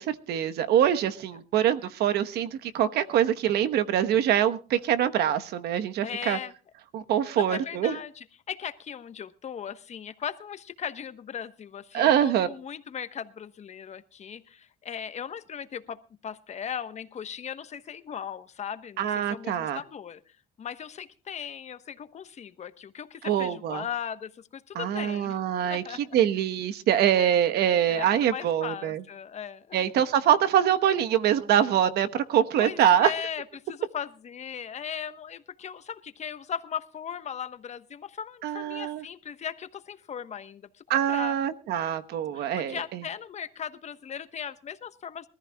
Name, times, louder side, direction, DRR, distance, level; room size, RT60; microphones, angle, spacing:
voice 1, 0.0-6.4 6.9-8.0 11.9-12.5 19.0-19.8 23.2-23.8 24.7-25.8 26.1-29.0 29.7-33.1 38.4-39.0 40.9-42.8, right 10 dB, 75° right, 10 dB, 1.1 m, -24 dB
voice 2, 6.0-6.5 7.3-20.2 20.6-26.2 27.2-27.3 27.9-30.0 32.6-41.4 42.3-45.3, left 8 dB, 40° left, 11 dB, 1.1 m, -38 dB
23.5 x 14.0 x 2.3 m, 0.35 s
cardioid pair, 110°, 17 cm